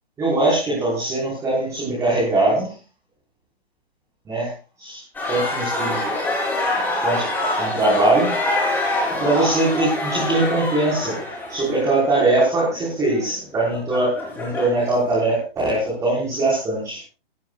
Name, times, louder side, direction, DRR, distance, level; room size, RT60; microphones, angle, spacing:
voice 1, 0.2-2.7 4.3-4.5 4.8-5.0 5.3-6.0 7.0-7.3 7.6-8.4 9.2-11.2 11.5-17.0, right 2 dB, 10° right, -5 dB, 5.2 m, -21 dB
sound 1, 5.1-15.1, left 2 dB, 5° left, 4.3 m, -25 dB
20.0 x 16.5 x 2.5 m, 0.32 s
hypercardioid pair, 165°, 31 cm